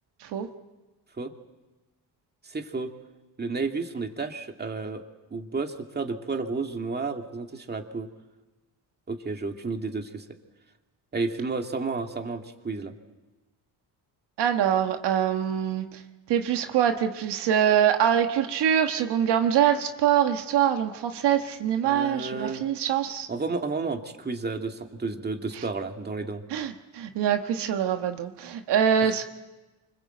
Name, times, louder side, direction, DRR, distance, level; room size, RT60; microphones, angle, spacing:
voice 1, 2.4-2.9 3.4-5.0 5.3-8.1 9.1-10.3 11.1-12.9 21.8-22.6 23.3-26.4 29.0-29.2, right 4 dB, 25° right, 4 dB, 2.1 m, -31 dB
voice 2, 14.4-16.0 16.3-23.3 25.5-25.6 26.5-29.2, right 9 dB, 80° right, 6 dB, 1.4 m, -24 dB
25.0 x 21.0 x 7.9 m, 1.1 s
cardioid pair, 95°, 41 cm